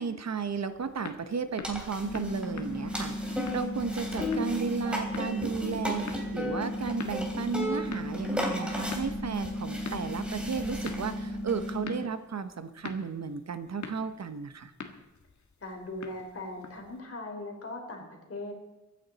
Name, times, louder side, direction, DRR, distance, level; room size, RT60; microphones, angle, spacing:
voice 1, 0.0-14.7, right 5 dB, 60° right, 10 dB, 0.9 m, -34 dB
sound 1, 0.5-17.0, left 5 dB, 65° left, 1.6 m, -47 dB
sound 2, 1.6-11.8, left 1 dB, 5° right, 2.9 m, -36 dB
sound 3, 2.0-12.0, equal, 25° left, 1.4 m, -36 dB
voice 2, 15.6-18.5, left 2 dB, 50° left, 2 dB, 3.4 m, -39 dB
23.0 x 9.8 x 4.1 m, 1.1 s
wide cardioid pair, 140°, 31 cm